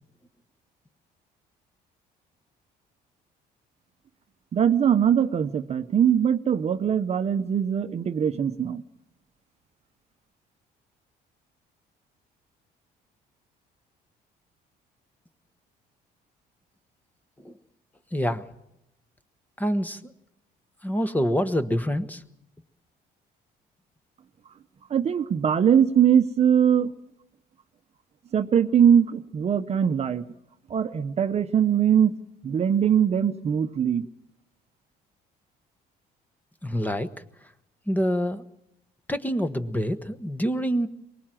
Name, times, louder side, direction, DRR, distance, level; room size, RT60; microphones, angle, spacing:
voice 1, 4.5-8.8 24.9-26.9 28.3-30.2 30.7-32.1 32.4-34.1, right 8 dB, 40° right, 10 dB, 0.9 m, -21 dB
voice 2, 18.1-18.4 19.6-20.0 20.8-22.2 36.6-37.1 37.9-38.4 39.1-40.9, equal, 10° left, 9 dB, 1.2 m, -26 dB
23.5 x 20.0 x 7.6 m, 0.83 s
cardioid pair, 110°, 17 cm